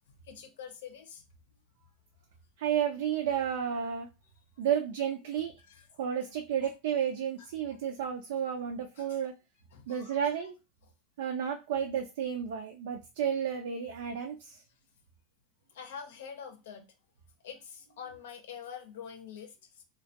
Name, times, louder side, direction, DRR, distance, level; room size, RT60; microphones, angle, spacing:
voice 1, 0.3-1.2 5.7-5.9 9.0-9.2 9.7-10.3 15.7-16.9 17.4-19.8, left 7 dB, 80° left, 0.6 m, -46 dB
voice 2, 2.6-4.1 4.6-5.5 6.0-9.3 9.9-10.6 11.2-14.6, right 8 dB, 80° right, 0.4 m, -32 dB
2.2 x 2.1 x 2.7 m
hypercardioid pair, 105°, 0 cm